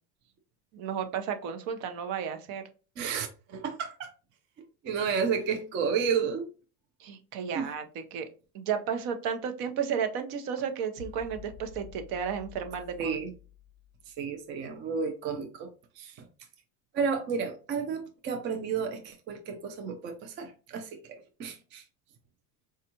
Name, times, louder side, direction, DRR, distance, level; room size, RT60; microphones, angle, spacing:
voice 1, 0.7-2.6 7.0-8.3 8.5-13.2, right 7 dB, 55° right, 0.8 m, -33 dB
voice 2, 3.0-4.1 4.8-6.5 7.5-7.7 13.0-13.3 14.1-15.7 16.0-16.2 16.9-21.8, right 6 dB, 25° right, 0.4 m, -32 dB
sound 1, 11.0-14.4, left 7 dB, 90° right, 1.6 m, -49 dB
4.5 x 2.4 x 2.8 m
supercardioid pair, 125°, 45 cm